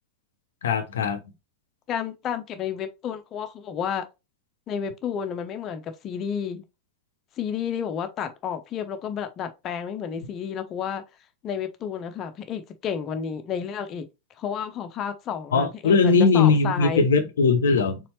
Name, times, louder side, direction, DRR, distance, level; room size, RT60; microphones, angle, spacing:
voice 1, 0.6-1.2 15.5-18.0, left 4 dB, 65° left, 0.7 m, -20 dB
voice 2, 1.9-4.1 4.7-6.6 7.4-11.0 11.4-14.1 14.4-17.1, left 7 dB, 30° left, 0.7 m, -31 dB
4.2 x 3.8 x 3.1 m
figure-of-eight pair, 90°, 0 cm